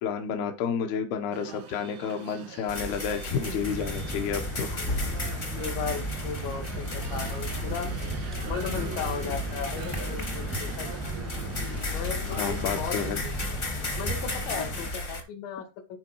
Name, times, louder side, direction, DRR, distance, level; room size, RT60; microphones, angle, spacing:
voice 1, 0.0-4.8 8.7-9.1 12.3-13.2, left 7 dB, 75° left, 5 dB, 3.0 m, -31 dB
sound 1, 1.3-12.8, right 8 dB, 90° right, 3.7 m, -43 dB
sound 2, 2.7-15.2, left 2 dB, 45° left, 0.9 m, -34 dB
sound 3, 3.6-14.9, right 1 dB, ahead, 0.5 m, -37 dB
voice 2, 5.5-7.9 8.4-10.9 11.9-13.6 14.0-16.0, left 7 dB, 90° left, 4 dB, 3.8 m, -36 dB
11.5 x 5.0 x 4.6 m, 0.28 s
omnidirectional pair, 4.9 m